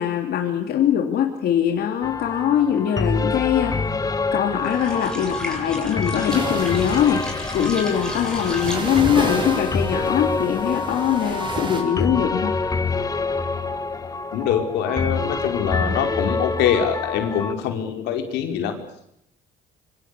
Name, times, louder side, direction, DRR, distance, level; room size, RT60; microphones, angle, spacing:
voice 1, 0.0-3.8 4.3-7.3 7.5-12.6, left 9 dB, 70° left, 3 dB, 3.4 m, -22 dB
sound 1, 2.0-17.5, left 3 dB, 20° left, 2.0 m, -27 dB
sound 2, 4.6-9.3, left 1 dB, 5° left, 6.9 m, -34 dB
sound 3, 6.3-11.8, right 3 dB, 30° right, 7.5 m, -32 dB
voice 2, 14.3-18.7, left 8 dB, 85° left, 5 dB, 5.0 m, -24 dB
26.0 x 25.0 x 8.5 m, 0.77 s
cardioid pair, 110°, 17 cm